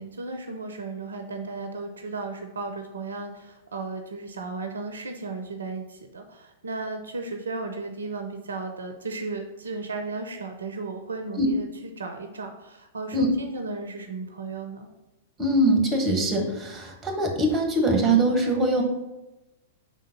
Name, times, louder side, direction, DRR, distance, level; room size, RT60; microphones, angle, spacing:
voice 1, 0.0-14.9, right 3 dB, 75° right, 6 dB, 0.6 m, -35 dB
voice 2, 15.4-18.8, right 1 dB, 20° right, 3 dB, 1.3 m, -22 dB
5.1 x 3.8 x 5.2 m, 1.0 s
figure-of-eight pair, 105°, 0 cm